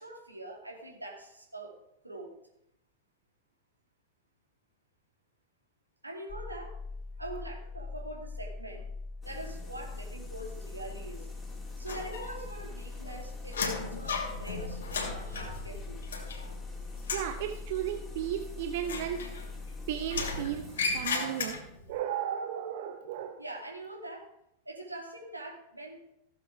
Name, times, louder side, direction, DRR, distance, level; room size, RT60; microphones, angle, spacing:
voice 1, 0.0-1.8 2.0-2.4 6.0-6.8 7.2-8.9 9.2-11.3 11.8-16.0 23.4-24.3 24.7-26.0, right 1 dB, 85° right, 1 dB, 2.4 m, -43 dB
sound 1, 6.3-20.4, left 3 dB, 25° left, 1.2 m, -42 dB
sound 2, 9.2-21.4, equal, 10° left, 2.8 m, -53 dB
sound 3, 11.9-12.6 12.9-16.7 17.0-17.4 18.8-19.7 20.1-21.9, left 4 dB, 65° left, 2.6 m, -35 dB
voice 2, 17.1-19.2 19.9-20.7 20.9-21.6 21.9-23.4, right 10 dB, 50° right, 7 dB, 0.9 m, -34 dB
15.5 x 7.7 x 4.8 m, 0.79 s
figure-of-eight pair, 90°, 0 cm